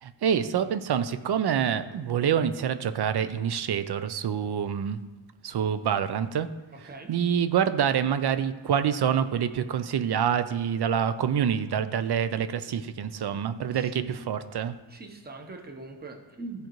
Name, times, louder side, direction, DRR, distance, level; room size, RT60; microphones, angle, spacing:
voice 1, 0.0-5.0 5.4-6.5 7.1-14.7, right 8 dB, 55° right, 12 dB, 0.6 m, -26 dB
voice 2, 13.7-14.1 14.9-16.7, right 3 dB, 20° right, 3 dB, 0.9 m, -41 dB
14.0 x 5.1 x 3.1 m, 1.2 s
wide cardioid pair, 150°, 47 cm